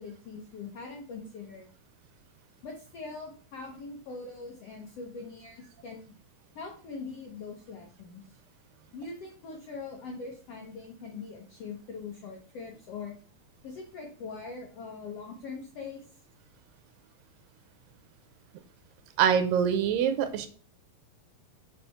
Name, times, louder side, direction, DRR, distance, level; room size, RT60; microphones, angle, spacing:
voice 1, 0.0-1.7 2.6-6.1 6.5-8.4 8.9-13.1 13.6-16.1, left 4 dB, 75° left, 1 dB, 1.4 m, -42 dB
voice 2, 19.2-20.5, right 8 dB, 80° right, 9 dB, 2.2 m, -24 dB
5.6 x 4.9 x 5.8 m, 0.43 s
omnidirectional pair, 4.2 m